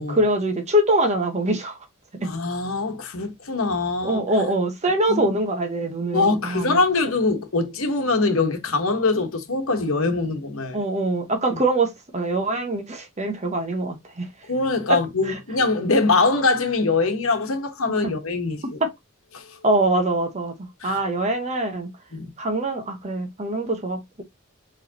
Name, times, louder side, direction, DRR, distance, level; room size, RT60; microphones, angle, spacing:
voice 1, 0.1-1.8 2.1-2.3 4.0-6.8 10.7-14.3 14.9-15.0 15.3-15.4 18.0-18.1 18.8-18.9 19.6-21.9 22.4-24.2, right 1 dB, 30° right, 1.0 m, -23 dB
voice 2, 2.2-4.2 5.1-5.3 6.1-10.8 14.5-18.8 19.3-19.4 20.8-21.0 22.1-22.3, left 3 dB, 70° left, 1.2 m, -23 dB
4.5 x 3.4 x 2.8 m
head